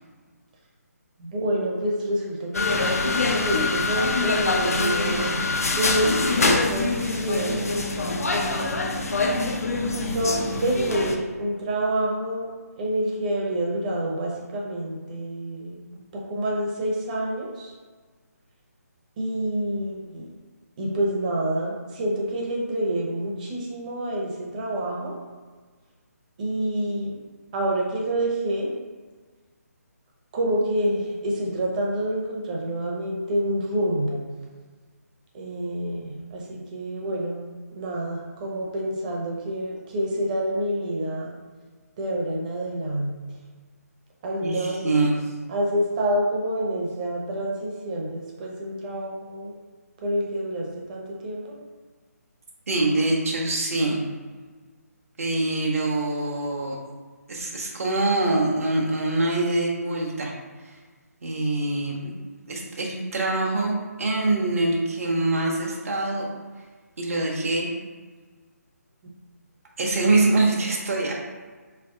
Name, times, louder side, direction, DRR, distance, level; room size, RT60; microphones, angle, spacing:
voice 1, 1.2-7.7 8.3-8.9 9.9-15.8 16.1-17.7 19.2-20.3 20.8-25.1 26.4-27.1 27.5-28.7 30.3-34.2 35.3-37.4 37.7-41.3 42.0-43.2 44.2-44.8 45.5-49.5 50.0-51.6, right 1 dB, 30° right, -2 dB, 0.8 m, -27 dB
sound 1, 2.5-11.2, left 3 dB, 60° left, 0.6 m, -24 dB
voice 2, 44.4-45.2 52.7-54.1 55.2-56.8 57.3-60.3 61.2-62.1 62.5-66.3 67.0-67.7 69.8-71.1, right 2 dB, 55° right, -2 dB, 0.9 m, -24 dB
4.1 x 3.3 x 3.7 m, 1.4 s
figure-of-eight pair, 150°, 9 cm